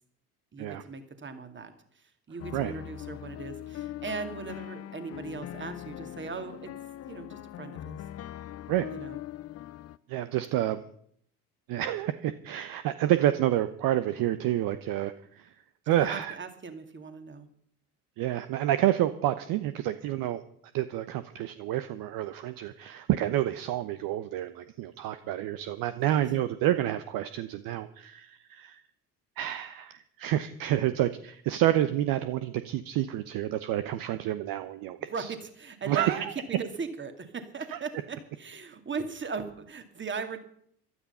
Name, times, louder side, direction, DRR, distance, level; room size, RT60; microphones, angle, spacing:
voice 1, 0.5-6.7 7.1-8.0 8.9-9.2 15.9-17.5 26.0-26.2 35.1-40.4, right 5 dB, 25° right, 8 dB, 2.3 m, -38 dB
sound 1, 2.4-10.0, left 12 dB, 30° left, 0.7 m, -41 dB
voice 2, 10.1-10.8 11.7-15.5 15.9-16.3 18.2-20.4 20.7-28.8 29.4-35.3 35.9-36.3 37.7-37.8, right 13 dB, 45° right, 12 dB, 1.0 m, -29 dB
15.5 x 12.5 x 5.6 m, 0.64 s
figure-of-eight pair, 65°, 47 cm